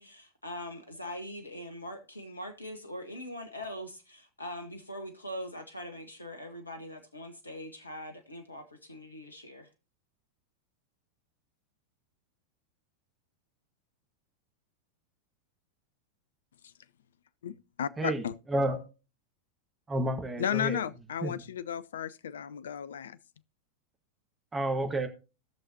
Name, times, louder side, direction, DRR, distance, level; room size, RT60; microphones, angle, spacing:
voice 1, 0.0-9.7, equal, 80° left, 1.3 m, -42 dB
voice 2, 17.4-18.3 20.4-23.2, left 9 dB, 65° left, 0.5 m, -34 dB
voice 3, 18.5-18.8 19.9-20.8 21.2-21.4 24.5-25.1, right 1 dB, 15° right, 1.5 m, -30 dB
18.5 x 6.5 x 2.8 m
figure-of-eight pair, 90°, 0 cm